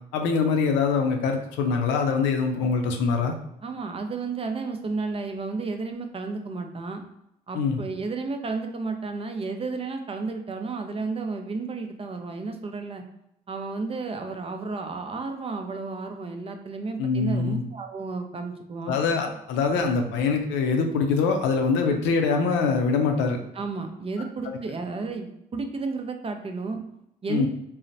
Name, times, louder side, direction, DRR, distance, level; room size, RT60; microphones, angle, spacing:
voice 1, 0.1-3.3 7.5-7.8 17.0-17.6 18.9-23.4 27.3-27.5, left 5 dB, 70° left, 4 dB, 0.5 m, -24 dB
voice 2, 3.6-7.0 7.5-13.0 13.5-19.0 23.5-26.8 27.2-27.5, right 4 dB, 30° right, 5 dB, 0.5 m, -32 dB
3.8 x 2.0 x 2.6 m, 0.79 s
hypercardioid pair, 50°, 20 cm